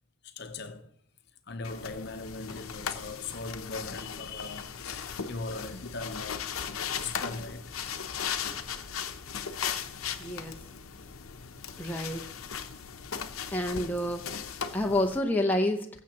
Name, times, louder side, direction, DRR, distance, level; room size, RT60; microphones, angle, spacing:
voice 1, 0.2-0.9 1.5-7.8 14.5-14.6, left 3 dB, 50° left, 0.8 m, -40 dB
sound 1, 1.6-15.2, left 7 dB, 80° left, 0.8 m, -37 dB
voice 2, 10.2-10.6 11.8-12.2 13.5-14.3 14.7-15.9, left 1 dB, 10° left, 0.6 m, -28 dB
21.0 x 7.4 x 2.9 m
head